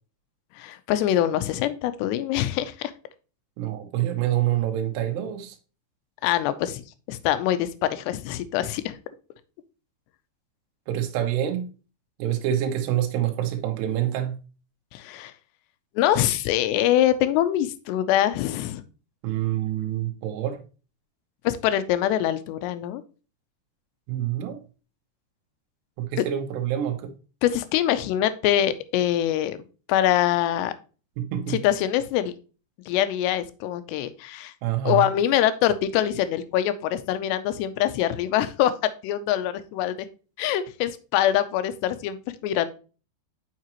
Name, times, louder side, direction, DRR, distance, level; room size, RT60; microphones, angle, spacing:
voice 1, 0.6-2.9 6.2-6.8 7.1-9.0 14.9-15.3 16.0-18.8 21.4-23.0 27.4-29.6 29.9-30.7 31.5-32.3 32.9-34.5 34.9-40.0 40.4-42.7, left 12 dB, 85° left, 2.8 m, -24 dB
voice 2, 3.6-5.6 10.9-11.7 12.2-14.4 19.2-20.6 24.1-24.6 26.0-27.1 31.2-31.6 34.6-35.1, right 11 dB, 80° right, 3.1 m, -26 dB
7.4 x 5.8 x 3.0 m
omnidirectional pair, 4.9 m